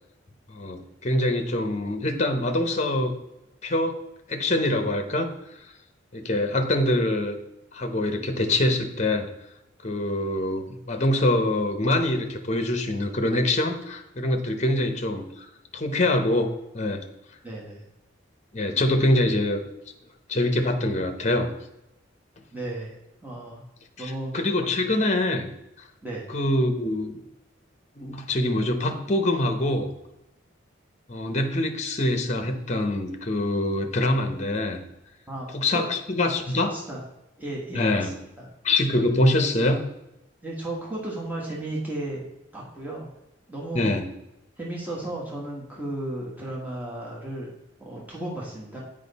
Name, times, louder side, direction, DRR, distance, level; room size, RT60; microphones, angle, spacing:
voice 1, 0.5-3.1 3.6-4.0 4.3-5.3 6.1-7.4 7.7-9.3 9.8-15.5 15.7-17.0 18.5-19.6 20.3-21.5 24.0-25.5 25.8-25.9 26.3-27.2 28.0-29.9 31.1-34.8 35.5-36.7 37.7-38.1 38.6-39.8 43.7-44.1, left 1 dB, 35° left, 6 dB, 0.8 m, -24 dB
voice 2, 17.4-17.8 22.5-23.0 23.2-23.6 24.0-24.3 26.0-26.2 35.3-35.5 35.7-35.8 36.6-37.0 37.4-38.5 40.4-42.2 42.5-43.1 43.5-43.9 44.6-47.5 47.8-48.8, right 1 dB, 10° right, -4 dB, 1.3 m, -34 dB
7.5 x 5.1 x 4.1 m, 0.91 s
head